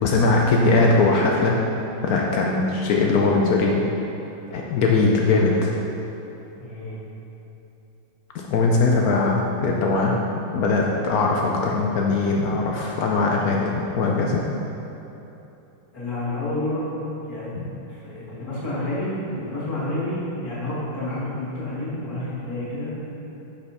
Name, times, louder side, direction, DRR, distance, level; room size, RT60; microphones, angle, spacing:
voice 1, 0.0-1.6 2.0-3.8 4.5-5.7 8.3-10.2 10.5-14.4 17.6-17.7, left 3 dB, 85° left, -1 dB, 0.8 m, -20 dB
voice 2, 6.6-7.0 15.9-16.8 17.3-17.5 17.9-22.9, left 1 dB, 40° left, -8 dB, 2.3 m, -29 dB
10.5 x 5.5 x 4.2 m, 2.9 s
omnidirectional pair, 2.4 m